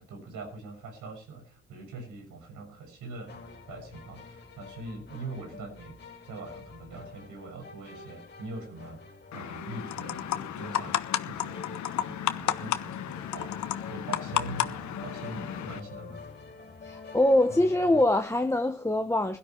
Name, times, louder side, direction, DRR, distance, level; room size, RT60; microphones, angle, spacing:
voice 1, 0.0-6.0 6.2-9.0 9.3-11.6 12.0-13.6 13.9-16.2, right 3 dB, 80° right, 6.4 m, -43 dB
sound 1, 3.3-18.0, left 4 dB, 35° left, 4.2 m, -46 dB
sound 2, 9.3-15.8, left 10 dB, 70° left, 1.1 m, -32 dB
voice 2, 16.8-19.4, left 1 dB, 10° left, 1.1 m, -24 dB
16.5 x 13.0 x 4.6 m
cardioid pair, 90°, 30 cm